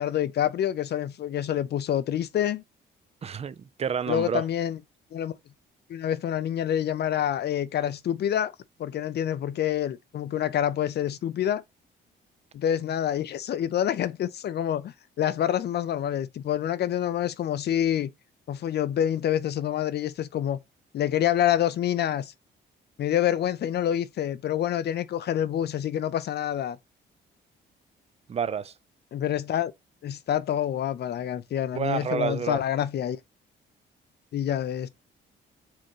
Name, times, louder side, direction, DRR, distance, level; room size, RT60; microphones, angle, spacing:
voice 1, 0.0-2.6 4.1-4.8 5.1-5.3 5.9-8.5 8.8-11.6 12.5-18.1 18.5-20.6 20.9-22.3 23.0-26.8 29.1-29.7 30.0-33.2 34.3-34.9, left 10 dB, 55° left, 0.5 m, -27 dB
voice 2, 3.2-4.5 28.3-28.7 31.7-32.6, right 7 dB, 30° right, 0.4 m, -29 dB
4.5 x 3.6 x 3.0 m
cardioid pair, 90°, 20 cm